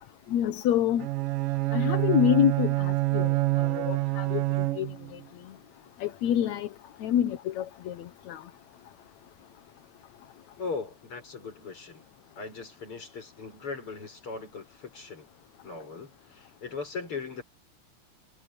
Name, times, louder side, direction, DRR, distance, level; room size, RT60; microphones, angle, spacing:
voice 1, 0.3-1.1 1.7-3.3 3.7-4.4 4.8-4.9 6.0-6.7 7.0-7.9 8.3-8.4, left 10 dB, 65° left, 2.2 m, -26 dB
Bowed string instrument, 1.0-5.2, right 21 dB, 90° right, 2.3 m, -27 dB
voice 2, 10.6-12.1 12.4-15.3 15.6-17.4, left 4 dB, 40° left, 7.1 m, -39 dB
omnidirectional pair, 3.8 m